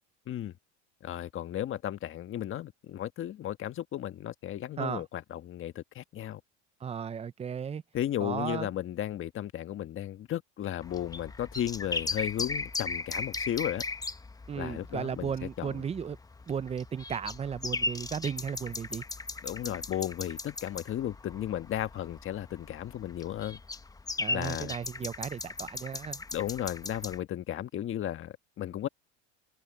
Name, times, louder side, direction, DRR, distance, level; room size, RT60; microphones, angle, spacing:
voice 1, 1.0-6.4 7.9-13.8 14.5-15.8 19.4-23.6 24.3-24.7 26.3-28.9, left 11 dB, 35° left, 1.5 m, -34 dB
voice 2, 6.8-7.8 8.2-8.7 14.5-16.2 16.5-19.0 24.2-26.2, right 7 dB, 15° right, 0.7 m, -35 dB
sound 1, 10.8-27.2, left 3 dB, 10° left, 1.0 m, -38 dB
supercardioid pair, 120°, 35 cm